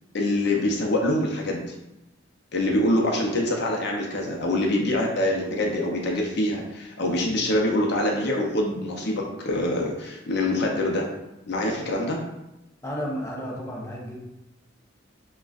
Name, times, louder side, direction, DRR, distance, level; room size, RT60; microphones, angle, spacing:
voice 1, 0.1-1.7 2.5-11.1 11.5-12.2, left 1 dB, 60° left, 0 dB, 0.6 m, -25 dB
voice 2, 12.8-14.2, equal, 15° left, -3 dB, 0.6 m, -32 dB
6.2 x 2.3 x 2.4 m, 0.91 s
head